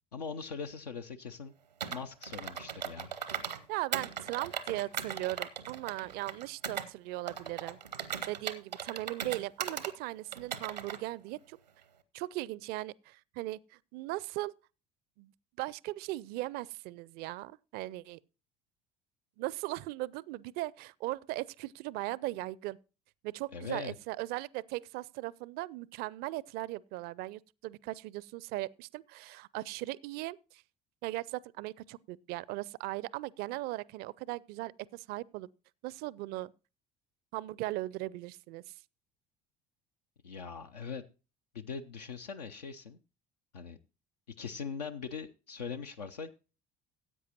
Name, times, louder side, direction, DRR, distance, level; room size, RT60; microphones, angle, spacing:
voice 1, 0.1-1.5 1.9-3.1 23.5-23.9 40.2-41.0 41.5-43.0 43.5-43.8 44.4-46.3, left 6 dB, 80° left, 0.5 m, -41 dB
Computer keyboard, 1.8-3.6 3.9-6.9 7.3-9.9 10.3-11.0, right 8 dB, 85° right, 0.7 m, -38 dB
voice 2, 3.7-7.8 8.3-11.6 12.1-14.5 15.2-15.3 15.6-18.2 19.4-22.8 23.2-30.6 31.0-35.5 35.8-36.5 37.3-38.7, right 18 dB, 50° right, 0.4 m, -38 dB
15.5 x 8.4 x 2.9 m
figure-of-eight pair, 60°, 21 cm